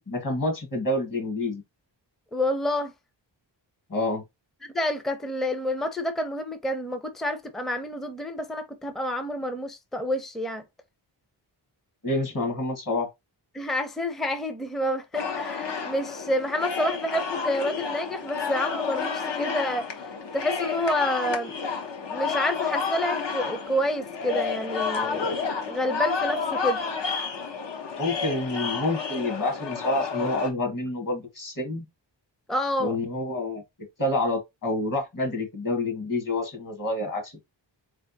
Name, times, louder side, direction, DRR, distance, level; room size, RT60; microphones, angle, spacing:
voice 1, 0.1-1.6 3.9-4.2 12.0-13.1 28.0-31.8 32.8-33.6 34.0-37.4, left 2 dB, 45° left, 1.5 m, -28 dB
voice 2, 2.3-2.9 4.7-10.6 13.5-20.1 20.3-21.6 22.1-26.8 32.5-33.0, left 1 dB, ahead, 0.5 m, -28 dB
sound 1, 15.1-30.5, left 5 dB, 70° left, 0.9 m, -30 dB
4.3 x 3.3 x 2.7 m
wide cardioid pair, 140°, 45 cm